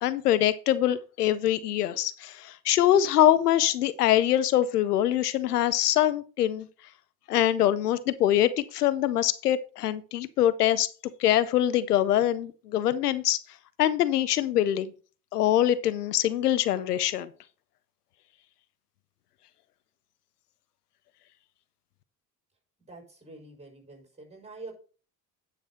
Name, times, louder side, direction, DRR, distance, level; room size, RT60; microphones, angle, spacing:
voice 1, 0.0-6.7 7.3-10.9 11.2-13.4 13.8-14.9 15.3-17.3, left 12 dB, 85° left, 0.6 m, -24 dB
voice 2, 22.9-24.7, right 2 dB, 15° right, 5.2 m, -46 dB
9.8 x 6.1 x 4.1 m
figure-of-eight pair, 55°, 45 cm